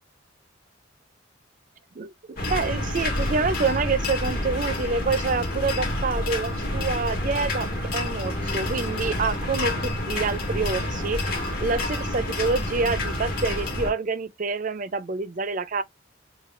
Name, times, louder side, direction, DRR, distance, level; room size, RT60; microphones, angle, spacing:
sound 1, 2.4-13.9, left 1 dB, 50° left, 1.8 m, -28 dB
voice 1, 2.5-11.2 11.6-15.8, right 4 dB, 40° right, 0.5 m, -27 dB
6.4 x 2.3 x 2.5 m
head